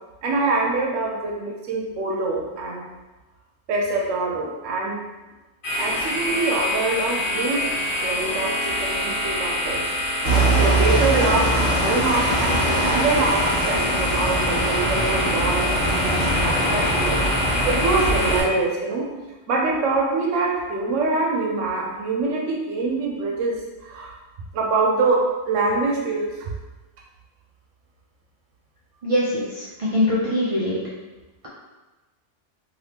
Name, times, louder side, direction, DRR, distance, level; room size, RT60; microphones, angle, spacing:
voice 1, 0.2-2.8 3.7-5.0 5.8-7.7 8.0-9.9 10.2-17.2 17.7-19.1 19.5-24.2 24.5-26.5, right 3 dB, 90° right, 0 dB, 0.9 m, -25 dB
sound 1, 5.6-18.4, left 1 dB, 50° left, 1.3 m, -26 dB
sound 2, 10.2-18.4, right 1 dB, 30° right, 1.1 m, -22 dB
voice 2, 29.0-30.8, left 1 dB, 55° right, -7 dB, 0.3 m, -22 dB
3.4 x 2.7 x 2.7 m, 1.1 s
omnidirectional pair, 1.2 m